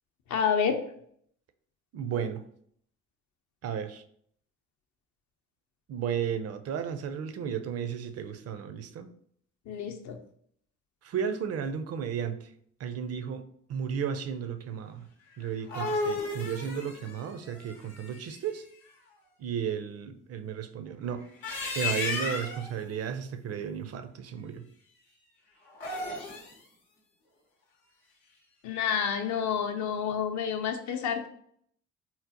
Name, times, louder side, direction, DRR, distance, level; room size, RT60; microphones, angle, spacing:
voice 1, 0.3-0.8 9.7-10.2 28.6-31.3, left 7 dB, 50° left, 6 dB, 0.6 m, -29 dB
voice 2, 1.9-2.4 3.6-4.0 5.9-9.1 11.0-12.5 12.8-13.4 13.7-15.1 15.4-18.6 19.4-21.2 21.7-24.7, right 8 dB, 45° right, 9 dB, 0.4 m, -34 dB
sound 1, 15.4-18.5 21.2-22.7 25.7-26.6, left 3 dB, 85° left, 0.8 m, -34 dB
3.8 x 2.0 x 2.7 m, 0.65 s
hypercardioid pair, 55°, 36 cm